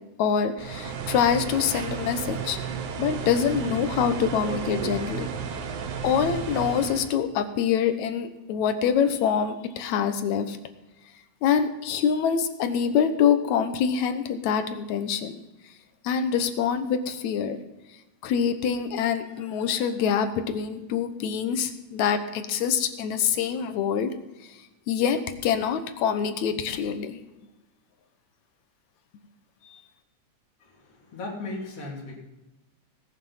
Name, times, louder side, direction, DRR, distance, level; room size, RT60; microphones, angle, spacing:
voice 1, 0.2-2.6 3.0-5.3 6.0-10.6 11.4-15.3 16.0-17.6 18.2-24.1 24.5-24.6 24.9-27.2 29.6-29.8, left 7 dB, 75° left, 9 dB, 2.3 m, -25 dB
sound 1, 0.6-7.1, right 7 dB, 85° right, 2.6 m, -33 dB
voice 2, 30.6-32.2, left 2 dB, 50° left, -5 dB, 3.7 m, -37 dB
19.0 x 7.0 x 5.6 m, 1.1 s
omnidirectional pair, 3.3 m